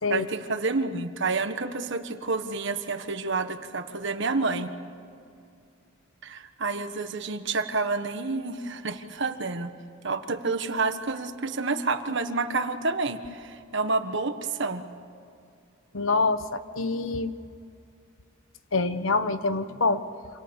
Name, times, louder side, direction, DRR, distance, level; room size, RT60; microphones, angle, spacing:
voice 1, 0.1-4.7 6.2-9.7 10.0-14.8, right 3 dB, 60° right, 8 dB, 1.5 m, -29 dB
voice 2, 15.9-17.3 18.7-20.0, left 3 dB, 75° left, 11 dB, 1.2 m, -25 dB
27.5 x 27.0 x 7.2 m, 2.4 s
head